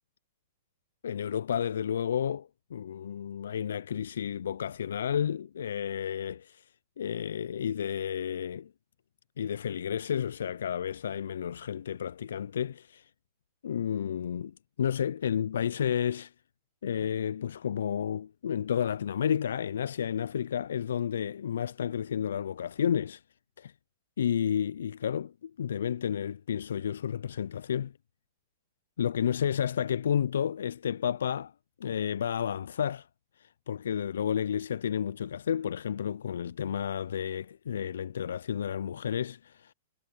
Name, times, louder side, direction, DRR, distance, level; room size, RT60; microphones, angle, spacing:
voice 1, 1.0-6.7 7.0-8.7 9.4-13.1 13.6-16.3 16.8-23.2 23.6-23.7 24.2-27.9 29.0-31.5 31.8-33.1 33.4-39.7, left 8 dB, 75° left, 0.4 m, -31 dB
hypercardioid pair, 120°, 0 cm